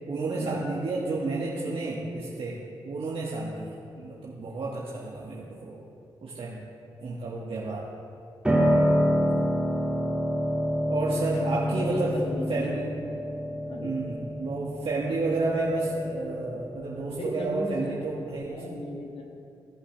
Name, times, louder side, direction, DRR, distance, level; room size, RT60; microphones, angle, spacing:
voice 1, 0.1-2.6 2.8-5.8 6.2-6.6 7.0-7.9 10.9-12.2 12.5-12.9 13.8-18.6, right 3 dB, 60° right, -5 dB, 1.4 m, -31 dB
Piano, 8.4-18.4, equal, 10° right, 2.3 m, -28 dB
voice 2, 11.0-12.7 13.6-14.0 17.1-18.1 18.4-19.2, left 1 dB, 60° left, 0 dB, 1.5 m, -37 dB
16.5 x 5.6 x 3.4 m, 2.7 s
supercardioid pair, 40°, 11 cm